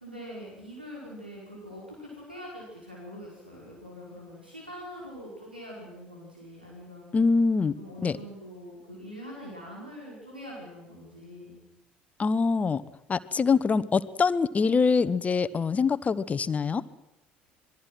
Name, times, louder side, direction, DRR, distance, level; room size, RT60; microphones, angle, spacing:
voice 1, 0.0-7.1 7.7-11.6, equal, 90° right, -4 dB, 5.3 m, -43 dB
voice 2, 7.1-7.7 8.0-8.2 12.2-12.8 13.1-16.8, left 5 dB, 30° left, 16 dB, 1.1 m, -24 dB
26.0 x 21.0 x 6.3 m, 0.90 s
figure-of-eight pair, 55°, 5 cm